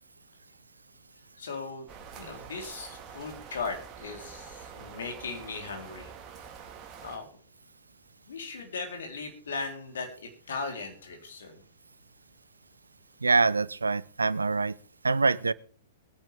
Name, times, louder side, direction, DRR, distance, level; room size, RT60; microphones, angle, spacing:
voice 1, 1.4-1.9 2.2-6.1 7.0-7.4 8.3-11.6, left 4 dB, 65° left, 3 dB, 4.1 m, -38 dB
sound 1, 1.9-7.2, right 7 dB, 25° right, 3.3 m, -46 dB
voice 2, 13.2-14.7 15.0-15.5, right 4 dB, 80° right, 20 dB, 0.6 m, -25 dB
22.0 x 10.5 x 3.6 m, 0.41 s
figure-of-eight pair, 105°, 0 cm